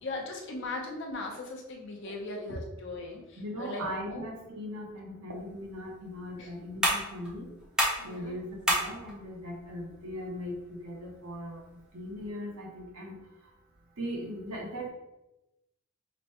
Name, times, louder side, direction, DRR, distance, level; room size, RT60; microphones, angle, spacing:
voice 1, 0.0-4.2 6.4-6.5 8.0-8.4, left 2 dB, 55° left, 1 dB, 0.7 m, -39 dB
voice 2, 3.4-7.5 8.0-11.6 11.9-13.2 14.0-14.9, equal, 80° right, 0 dB, 0.9 m, -39 dB
sound 1, 5.3-12.3, equal, 5° right, 0.6 m, -35 dB
5.0 x 2.1 x 2.9 m, 0.93 s
head